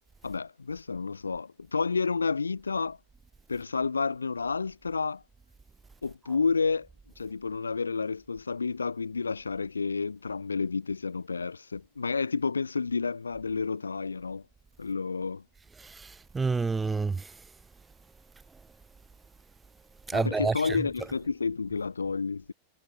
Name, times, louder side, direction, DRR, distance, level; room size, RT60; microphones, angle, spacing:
voice 1, 0.2-3.0 3.5-5.2 6.0-6.9 7.2-14.4 14.8-15.4 20.1-22.5, left 4 dB, 75° left, 2.6 m, -30 dB
voice 2, 15.8-17.3 20.1-20.8, right 4 dB, 15° right, 1.3 m, -29 dB
figure-of-eight pair, 90°, 0 cm